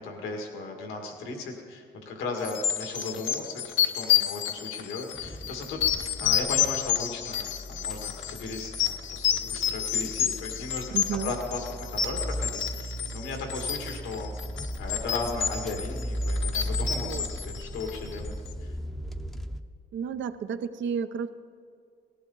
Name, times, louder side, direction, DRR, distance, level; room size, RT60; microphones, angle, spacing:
voice 1, 0.0-10.9 11.2-14.3 14.8-18.4 18.6-18.8, left 3 dB, 90° left, 2 dB, 2.0 m, -36 dB
sound 1, 2.4-18.3, left 10 dB, 75° left, 1.0 m, -29 dB
sound 2, 5.1-19.6, equal, ahead, 0.7 m, -37 dB
voice 2, 10.9-11.3 17.0-17.2 19.9-21.3, right 7 dB, 70° right, 10 dB, 0.8 m, -32 dB
18.0 x 15.0 x 4.0 m, 2.2 s
cardioid pair, 90°, 20 cm